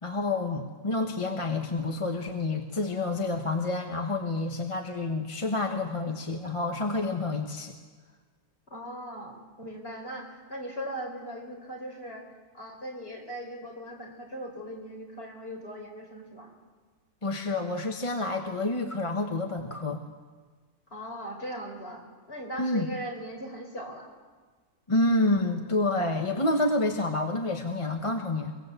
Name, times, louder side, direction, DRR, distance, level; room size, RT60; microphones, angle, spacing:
voice 1, 0.0-7.7 17.2-20.0 22.6-22.9 24.9-28.5, left 2 dB, 20° left, 3 dB, 1.2 m, -28 dB
voice 2, 8.7-12.2 12.5-16.5 20.9-24.1, equal, 35° left, 1 dB, 4.6 m, -39 dB
23.0 x 22.0 x 8.2 m, 1.4 s
omnidirectional pair, 1.7 m